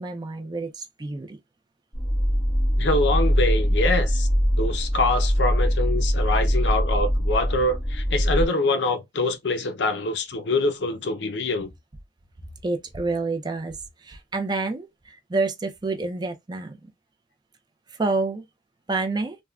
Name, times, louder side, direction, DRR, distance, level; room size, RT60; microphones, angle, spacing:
voice 1, 0.0-1.4 12.6-16.9 17.9-18.4 18.9-19.4, right 3 dB, 25° right, 0.4 m, -28 dB
sound 1, 1.9-8.5, equal, 20° left, 1.1 m, -22 dB
voice 2, 2.8-4.3 4.6-11.7, left 2 dB, 70° left, 0.6 m, -25 dB
3.5 x 2.1 x 2.2 m
head